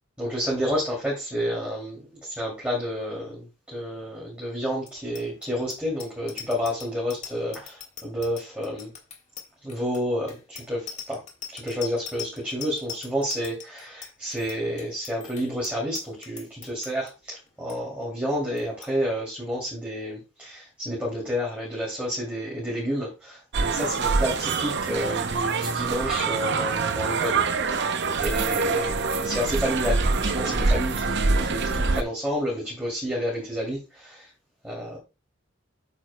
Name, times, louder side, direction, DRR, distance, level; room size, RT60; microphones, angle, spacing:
voice 1, 0.2-8.9 9.6-11.2 11.5-34.3 34.6-35.0, equal, 5° right, -5 dB, 2.7 m, -30 dB
Bicycle bell, 4.8-17.1 17.5-17.8 18.0-18.3 18.6-18.9, left 8 dB, 35° left, 1.6 m, -41 dB
sound 1, 23.5-32.0, right 4 dB, 55° right, 0.7 m, -25 dB
8.6 x 7.3 x 2.2 m, 0.28 s
head